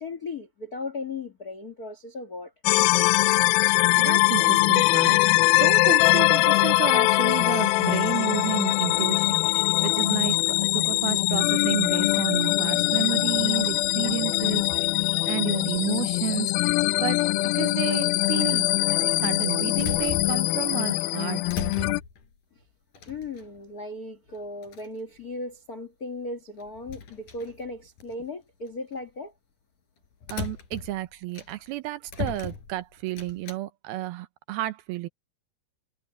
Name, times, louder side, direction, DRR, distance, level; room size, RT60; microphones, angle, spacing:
voice 1, 0.0-2.5 23.0-29.3, left 2 dB, 70° left, 0.8 m, -37 dB
sound 1, 2.7-22.0, left 22 dB, 90° left, 2.1 m, -22 dB
voice 2, 4.0-5.3 5.6-14.9 15.3-17.3 17.6-18.7 19.0-21.4 30.3-35.1, right 16 dB, 75° right, 2.5 m, -31 dB
sound 2, 14.5-15.5 16.8-17.5 18.3-18.4 19.3-20.8 21.1-22.3 22.9-23.7 24.3-24.4 24.6-25.0 26.6-28.1 28.7-28.9 30.2-31.8 32.1-33.6, left 5 dB, 50° left, 5.8 m, -38 dB
omnidirectional pair, 4.8 m